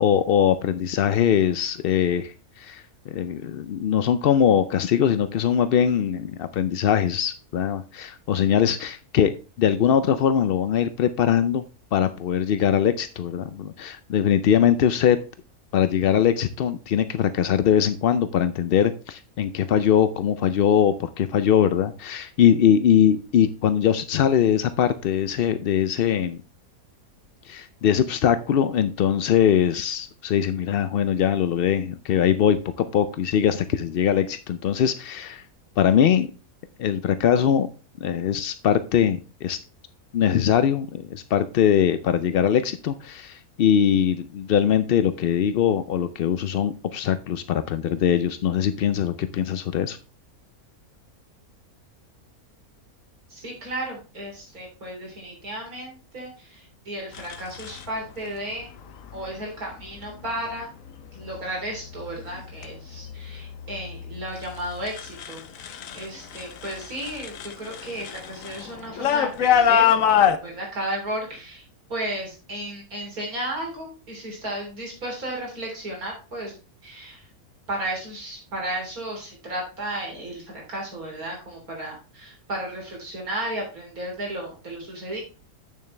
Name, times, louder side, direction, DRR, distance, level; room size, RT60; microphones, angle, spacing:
voice 1, 0.0-9.3 9.6-11.6 11.9-15.2 15.7-26.4 27.5-35.4 35.8-36.3 36.8-37.7 38.0-39.6 40.1-50.0, left 9 dB, 80° left, 12 dB, 0.5 m, -21 dB
voice 2, 53.3-58.7 59.1-60.7 61.1-69.9 70.4-71.6 71.9-76.5 76.8-77.2 77.7-85.2, right 1 dB, 70° right, -1 dB, 3.9 m, -34 dB
sound 1, 57.1-57.8 59.0-59.3 59.9-60.3 60.9-61.4 61.7-66.0 66.3-70.4, left 8 dB, 65° left, 1.1 m, -25 dB
8.6 x 6.9 x 3.3 m, 0.34 s
omnidirectional pair, 1.6 m